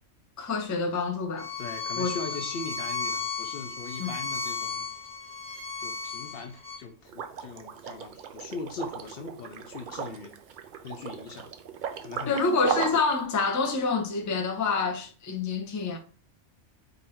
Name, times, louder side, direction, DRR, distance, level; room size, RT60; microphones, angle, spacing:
voice 1, 0.4-1.5 2.0-2.1 4.0-4.1 12.3-16.0, left 4 dB, 20° left, 0.5 m, -27 dB
Bowed string instrument, 1.4-6.8, left 5 dB, 10° right, 0.8 m, -34 dB
voice 2, 1.6-4.9 5.8-10.4 10.8-11.5 12.0-12.5, left 4 dB, 60° left, 0.7 m, -40 dB
Liquid, 7.1-13.2, right 7 dB, 60° right, 0.5 m, -36 dB
3.9 x 2.6 x 4.2 m
omnidirectional pair, 1.2 m